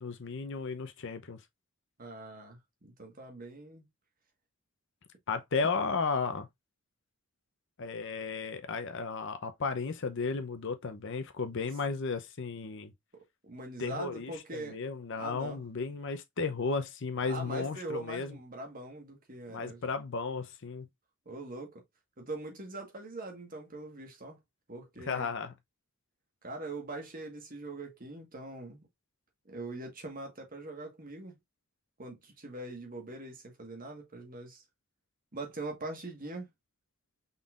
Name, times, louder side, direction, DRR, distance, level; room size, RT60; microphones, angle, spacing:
voice 1, 0.0-1.4 5.3-6.5 7.8-12.9 13.8-18.4 19.5-20.9 25.0-25.5, left 4 dB, 55° left, 0.7 m, -34 dB
voice 2, 2.0-3.9 13.1-14.8 15.1-15.6 17.2-19.8 21.2-21.8 22.2-24.4 24.7-25.3 26.4-28.8 29.4-31.4 32.0-34.6 35.3-36.5, right 2 dB, 40° right, 1.4 m, -42 dB
5.5 x 3.8 x 2.4 m
head